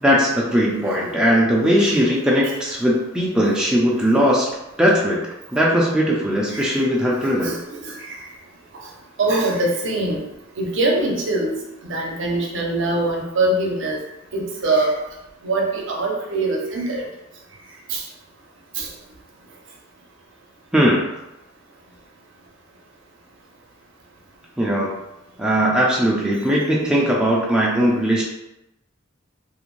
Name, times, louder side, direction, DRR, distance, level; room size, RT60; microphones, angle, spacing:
voice 1, 0.0-4.5 4.8-7.5 20.7-21.1 24.6-25.0 25.4-28.2, equal, 5° right, -4 dB, 0.4 m, -19 dB
voice 2, 6.5-6.8 7.2-8.2 8.7-8.9 9.2-10.2 10.6-11.5 11.9-14.0 14.3-15.0 15.4-17.0 17.9-18.0 18.8-18.9, right 2 dB, 65° right, 0 dB, 0.6 m, -23 dB
2.5 x 2.1 x 3.0 m, 0.91 s
head